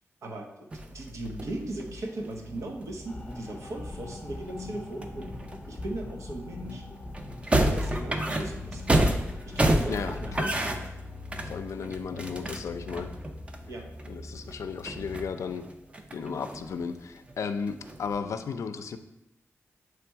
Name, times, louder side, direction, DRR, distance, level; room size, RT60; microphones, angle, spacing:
voice 1, 0.2-0.7 0.9-5.3 5.7-6.8 7.5-8.9 9.4-10.8 13.7-13.9, right 2 dB, 85° right, 2 dB, 1.0 m, -38 dB
sound 1, 0.7-6.1 6.7-6.8 7.1-14.1 14.5-14.6 14.8-16.9 17.3-18.2, right 1 dB, 25° right, 0.5 m, -30 dB
sound 2, 2.5-15.2, left 2 dB, 55° right, 2.4 m, -45 dB
sound 3, 3.0-10.7, left 3 dB, 25° left, 0.5 m, -42 dB
voice 2, 9.9-10.5 11.4-13.1 14.1-15.7 16.1-19.0, left 6 dB, 85° left, 9 dB, 0.5 m, -34 dB
7.7 x 3.4 x 4.5 m, 0.92 s
wide cardioid pair, 145°, 5 cm